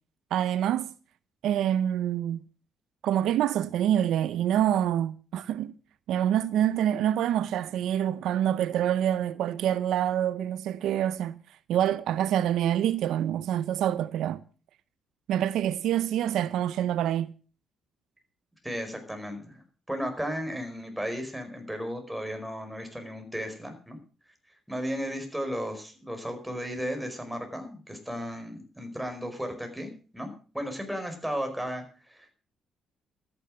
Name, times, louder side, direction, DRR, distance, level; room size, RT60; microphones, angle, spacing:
voice 1, 0.3-0.9 1.4-2.4 3.0-5.7 6.1-11.4 11.7-14.4 15.3-17.3, right 10 dB, 80° right, 0.6 m, -26 dB
voice 2, 18.6-19.6 19.9-24.0 24.7-32.3, equal, 5° right, 4.8 m, -35 dB
13.5 x 10.0 x 6.4 m
cardioid pair, 90°, 0 cm